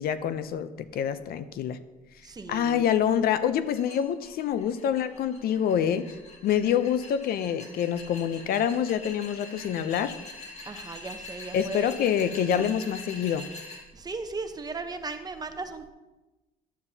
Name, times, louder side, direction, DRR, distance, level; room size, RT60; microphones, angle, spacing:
voice 1, 0.0-1.8 2.5-6.1 6.4-10.1 11.5-13.5, left 9 dB, 65° left, 13 dB, 0.5 m, -26 dB
voice 2, 2.2-2.8 10.6-11.9 12.5-12.7 13.9-15.9, right 3 dB, 25° right, 8 dB, 0.8 m, -36 dB
sound 1, 3.8-13.8, left 2 dB, 40° left, 1.9 m, -44 dB
11.5 x 8.7 x 2.8 m, 1.1 s
cardioid pair, 110°, 17 cm